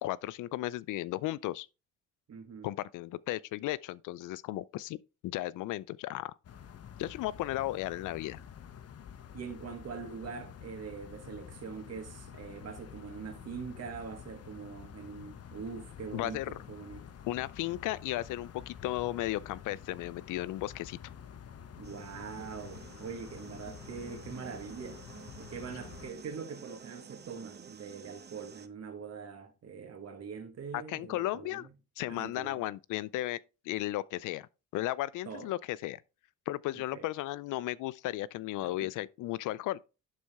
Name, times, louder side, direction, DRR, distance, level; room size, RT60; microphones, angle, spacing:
voice 1, 0.0-1.7 2.6-5.0 5.2-6.3 7.0-8.4 16.1-16.5 17.3-21.1 30.7-31.7 32.0-33.4 33.7-34.5 34.7-36.0 36.5-39.8, left 16 dB, 85° left, 0.5 m, -35 dB
voice 2, 2.3-2.7 9.3-17.1 21.8-25.0 25.5-31.7 32.1-32.6 35.2-35.5 36.9-37.1 38.6-38.9, right 6 dB, 55° right, 1.7 m, -43 dB
sound 1, 6.4-26.1, left 8 dB, 55° left, 1.0 m, -49 dB
sound 2, 21.8-28.7, right 6 dB, 35° right, 0.8 m, -51 dB
11.0 x 4.3 x 3.5 m
cardioid pair, 90°, 30 cm